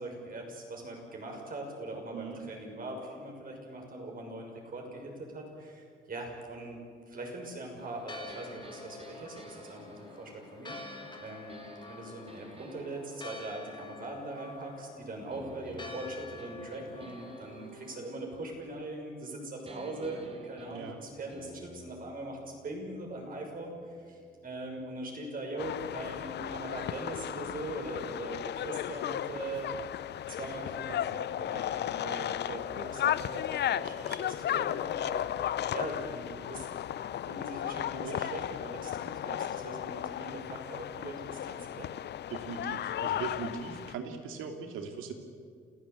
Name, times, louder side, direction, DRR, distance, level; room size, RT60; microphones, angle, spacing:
voice 1, 0.0-6.8 7.1-36.7 37.2-41.9, right 2 dB, 45° right, 2 dB, 6.5 m, -41 dB
Church bell, 7.8-18.0, left 3 dB, 20° left, 2.5 m, -48 dB
sound 1, 8.3-14.8 15.3-19.3 19.7-25.4, right 1 dB, 30° right, 3.8 m, -52 dB
voice 2, 20.7-21.0 38.0-38.4 42.3-45.1, right 6 dB, 90° right, 5 dB, 2.8 m, -40 dB
sound 2, 25.6-43.9, left 11 dB, 60° left, 0.6 m, -35 dB
28.5 x 15.5 x 8.4 m, 2.1 s
cardioid pair, 90°, 20 cm